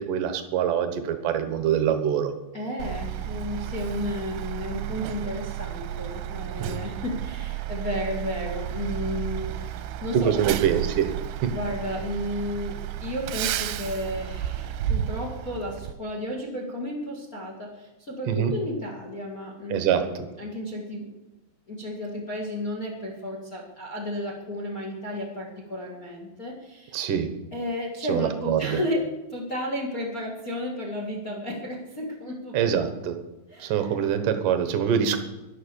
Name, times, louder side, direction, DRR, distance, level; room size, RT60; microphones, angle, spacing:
voice 1, 0.0-2.3 6.6-6.8 10.1-11.1 11.4-11.5 18.3-18.5 19.7-20.0 26.9-27.3 28.1-28.8 32.5-33.2 33.6-35.2, right 8 dB, 70° right, 8 dB, 2.0 m, -24 dB
voice 2, 2.5-10.3 11.5-21.1 21.7-27.1 27.5-32.6 33.5-33.9, left 1 dB, 45° left, 0 dB, 1.1 m, -33 dB
Truck, 2.8-15.9, right 12 dB, 90° right, 3.1 m, -32 dB
13.0 x 11.5 x 7.0 m, 1.0 s
omnidirectional pair, 5.5 m